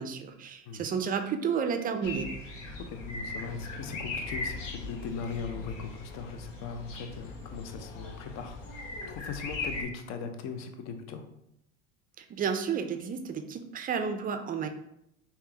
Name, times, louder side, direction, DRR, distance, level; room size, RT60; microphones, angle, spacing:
voice 1, 0.0-2.3 12.2-14.7, right 6 dB, 25° right, 6 dB, 0.3 m, -31 dB
sound 1, 2.0-9.8, left 3 dB, 90° left, 0.8 m, -39 dB
voice 2, 2.9-11.3, left 5 dB, 45° left, 7 dB, 0.6 m, -39 dB
3.6 x 2.8 x 2.8 m, 0.79 s
hypercardioid pair, 80°, 37 cm